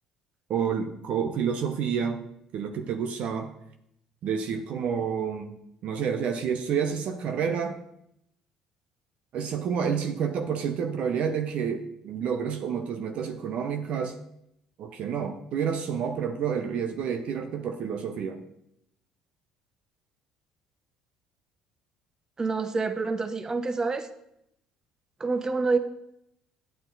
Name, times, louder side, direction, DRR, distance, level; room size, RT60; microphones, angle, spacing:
voice 1, 0.5-2.2 2.5-3.5 4.2-5.5 5.8-7.8 9.3-14.2 14.8-18.4, right 7 dB, 55° right, 5 dB, 0.8 m, -29 dB
voice 2, 22.4-24.1 25.2-25.8, right 4 dB, 25° right, 10 dB, 1.0 m, -27 dB
9.1 x 8.9 x 4.0 m, 0.78 s
hypercardioid pair, 55°, 2 cm